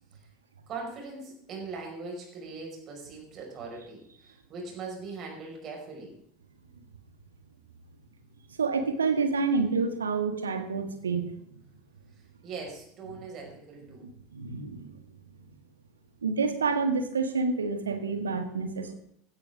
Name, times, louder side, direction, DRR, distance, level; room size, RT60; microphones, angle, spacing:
voice 1, 0.7-6.1 12.4-14.1, right 4 dB, 35° right, 0 dB, 5.4 m, -40 dB
voice 2, 8.6-11.3 13.9-15.0 15.4-15.5 16.2-18.9, right 4 dB, 75° right, 7 dB, 1.7 m, -28 dB
16.5 x 12.5 x 3.7 m, 0.71 s
figure-of-eight pair, 75°, 0 cm